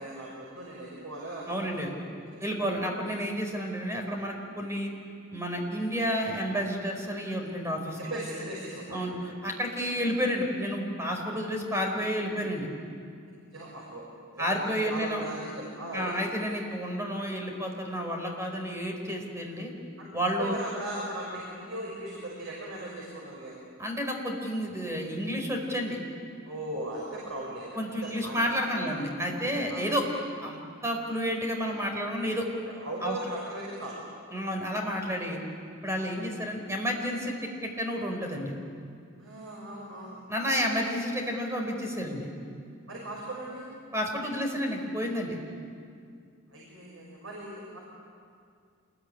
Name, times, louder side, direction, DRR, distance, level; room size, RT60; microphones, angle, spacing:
voice 1, 0.0-1.8 2.3-2.4 8.0-9.1 13.5-14.0 14.4-14.5 14.8-16.1 20.0-20.1 20.4-23.7 26.5-28.9 29.7-29.9 32.7-34.0 36.0-36.2 39.2-40.2 42.9-43.6 46.5-47.8, right 1 dB, 80° right, -4 dB, 6.4 m, -38 dB
voice 2, 1.5-1.9 2.4-4.9 5.3-8.0 8.9-12.7 14.4-15.3 15.9-19.7 20.1-20.6 23.8-26.0 27.7-30.1 30.4-32.4 33.0-33.2 34.3-35.4 35.8-37.3 37.6-38.5 40.3-42.3 43.9-45.4, equal, 15° right, 2 dB, 4.7 m, -30 dB
27.5 x 21.5 x 10.0 m, 2.2 s
head